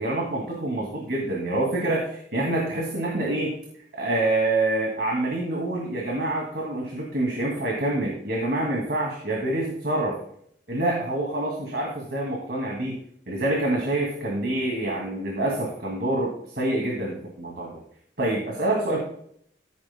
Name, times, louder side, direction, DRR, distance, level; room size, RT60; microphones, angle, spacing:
voice 1, 0.0-3.5 4.0-10.2 10.7-13.0 13.3-17.8 18.2-19.0, right 1 dB, 65° right, -2 dB, 2.4 m, -26 dB
15.0 x 9.2 x 2.2 m, 0.66 s
head